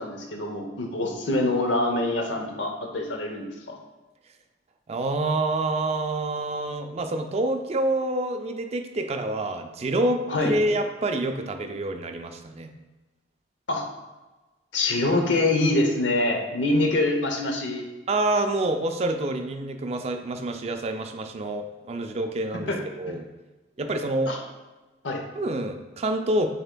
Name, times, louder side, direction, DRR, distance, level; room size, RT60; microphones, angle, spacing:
voice 1, 0.0-3.8 10.3-10.5 13.7-13.8 14.7-17.9 22.6-22.8 24.3-24.4 25.0-25.2, left 2 dB, 80° left, 3 dB, 0.7 m, -25 dB
voice 2, 4.9-12.7 18.1-23.2 23.8-24.3 25.4-26.5, right 2 dB, 35° right, 6 dB, 0.4 m, -27 dB
6.6 x 3.5 x 2.2 m, 1.2 s
head